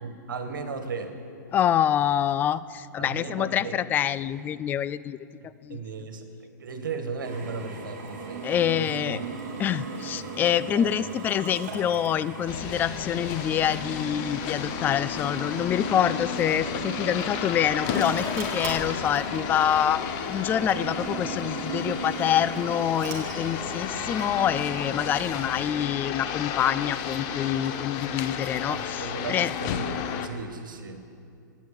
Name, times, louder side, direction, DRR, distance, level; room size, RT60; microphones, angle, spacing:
voice 1, 0.0-1.1 3.0-3.8 5.7-9.2 10.7-11.1 28.7-31.0, right 4 dB, 75° right, 6 dB, 1.9 m, -36 dB
voice 2, 1.5-5.2 5.4-5.8 8.4-9.2 9.6-20.0 20.3-29.5, left 10 dB, 15° left, 16 dB, 0.3 m, -26 dB
Drill, 7.2-25.7, right 4 dB, 50° right, 4.5 m, -38 dB
sound 1, 12.5-30.3, left 8 dB, 35° left, 0.9 m, -33 dB
12.5 x 9.4 x 8.8 m, 2.4 s
hypercardioid pair, 130°, 11 cm